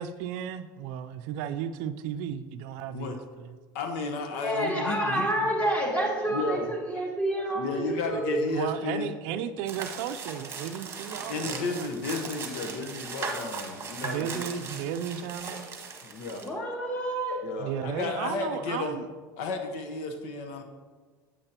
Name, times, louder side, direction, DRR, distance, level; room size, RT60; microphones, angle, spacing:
voice 1, 0.0-3.2 8.4-11.9 14.0-15.7 17.6-19.1, right 9 dB, 65° right, 11 dB, 0.5 m, -34 dB
voice 2, 3.7-5.5 6.3-6.7 7.5-9.1 11.3-14.5 16.0-16.5 17.4-19.0 19.4-20.6, left 3 dB, 70° left, 5 dB, 1.1 m, -33 dB
voice 3, 4.3-8.4 16.4-17.4, right 1 dB, 15° left, -1 dB, 2.2 m, -29 dB
sound 1, 9.7-16.5, right 4 dB, 25° right, 1.3 m, -38 dB
8.8 x 8.7 x 2.9 m, 1.4 s
supercardioid pair, 105°, 10 cm